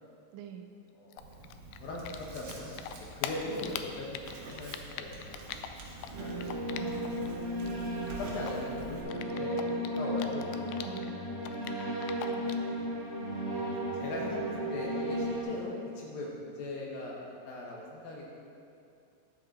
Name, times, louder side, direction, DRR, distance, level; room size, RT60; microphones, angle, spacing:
voice 1, 0.3-0.7 3.4-3.9 6.8-7.9 10.3-11.3, right 6 dB, 85° right, 5 dB, 3.0 m, -47 dB
voice 2, 1.0-1.3 1.8-6.4 7.7-9.6 10.0-10.6 11.1-11.5 12.2-13.0 13.9-17.2 17.5-18.2, left 2 dB, 70° left, -3 dB, 2.4 m, -41 dB
Typing, 1.1-2.5 2.8-7.3 7.5-11.1 11.4-12.7, left 10 dB, 85° left, 2.2 m, -41 dB
Writing, 1.2-9.0, right 3 dB, 60° right, 1.7 m, -48 dB
sound 1, 6.1-15.4, equal, 40° right, 2.2 m, -34 dB
12.0 x 7.7 x 4.1 m, 2.5 s
omnidirectional pair, 5.0 m